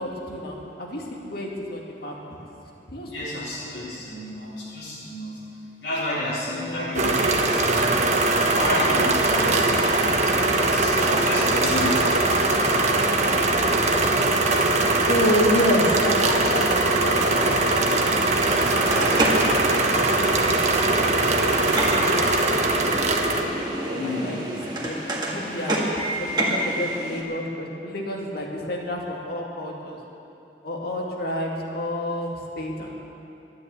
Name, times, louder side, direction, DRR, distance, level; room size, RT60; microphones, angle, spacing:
voice 1, 0.0-2.2 2.9-3.4 6.5-7.0 9.2-9.7 11.1-11.8 15.1-18.1 18.4-20.1 20.9-30.0 30.6-32.9, left 1 dB, 60° left, -1 dB, 2.2 m, -30 dB
voice 2, 3.1-5.4 5.8-8.0 8.4-9.7 10.6-12.0 13.2-13.4 23.9-24.4 25.9-26.8, left 1 dB, 80° left, -10 dB, 3.9 m, -31 dB
sound 1, 6.9-23.4, right 2 dB, 40° right, 1.1 m, -21 dB
sound 2, 17.0-27.2, right 1 dB, 25° right, 1.9 m, -30 dB
12.5 x 10.5 x 8.4 m, 2.9 s
head